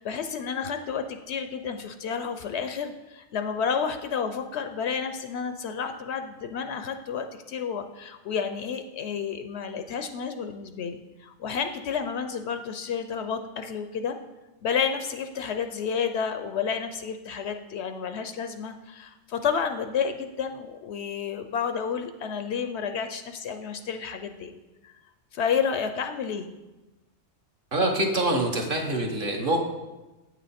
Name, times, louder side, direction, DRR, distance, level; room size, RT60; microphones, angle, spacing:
voice 1, 0.0-14.2 14.6-24.5 24.8-25.0 25.3-26.5, left 6 dB, 65° left, 8 dB, 0.8 m, -30 dB
voice 2, 27.7-29.6, right 1 dB, 45° right, 1 dB, 1.2 m, -25 dB
8.6 x 6.2 x 4.2 m, 1.1 s
omnidirectional pair, 1.3 m